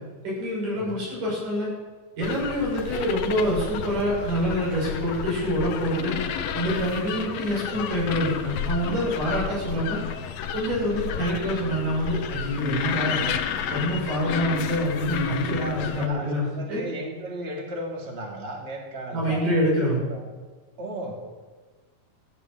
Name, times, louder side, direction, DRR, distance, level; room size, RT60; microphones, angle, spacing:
voice 1, 0.2-1.7 2.2-6.2 6.5-10.0 10.5-13.2 13.7-16.8 19.1-20.0, equal, 75° right, -5 dB, 8.0 m, -26 dB
sound 1, 2.2-16.1, left 8 dB, 65° left, 1.9 m, -31 dB
voice 2, 15.6-19.6 20.1-20.2 20.8-21.3, right 1 dB, 20° right, 1 dB, 2.0 m, -35 dB
14.0 x 10.5 x 7.4 m, 1.3 s
omnidirectional pair, 3.9 m